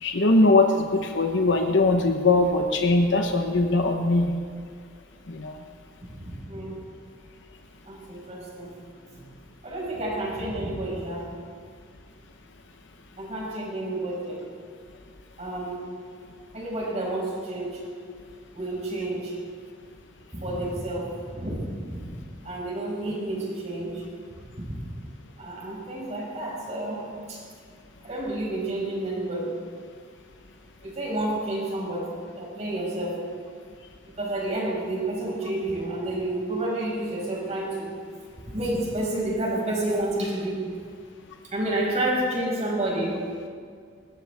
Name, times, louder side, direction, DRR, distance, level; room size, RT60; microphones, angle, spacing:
voice 1, 0.0-4.3 5.3-5.6, left 2 dB, 65° left, 4 dB, 1.0 m, -21 dB
voice 2, 6.2-6.8 7.9-8.7 9.1-9.2 9.6-11.3 13.2-14.4 15.4-15.8 16.5-17.8 18.5-19.3 20.3-22.2 22.4-24.0 24.5-24.6 24.8-24.9 25.4-27.0 27.3-27.4 28.0-29.6 30.8-33.2 34.2-37.9 38.5-40.6 41.5-43.2, right 1 dB, 35° right, -4 dB, 5.6 m, -30 dB
20.5 x 18.5 x 3.5 m, 2.1 s
head